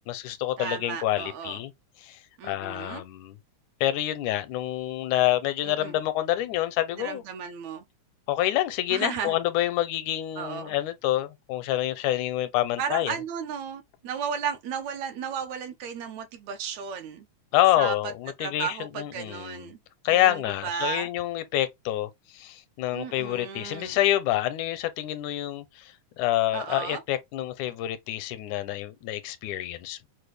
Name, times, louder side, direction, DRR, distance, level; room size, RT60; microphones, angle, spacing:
voice 1, 0.1-1.7 2.0-3.4 3.8-7.2 8.3-13.2 17.5-19.7 20.0-30.1, left 14 dB, 85° left, 2.1 m, -27 dB
voice 2, 0.6-1.6 2.4-3.0 5.7-6.0 7.0-7.8 8.9-9.4 10.4-10.7 12.8-17.3 17.8-18.0 18.4-19.8 20.1-21.1 22.9-24.0 26.5-27.0, right 7 dB, 75° right, 1.8 m, -34 dB
6.5 x 2.2 x 3.3 m
omnidirectional pair, 3.5 m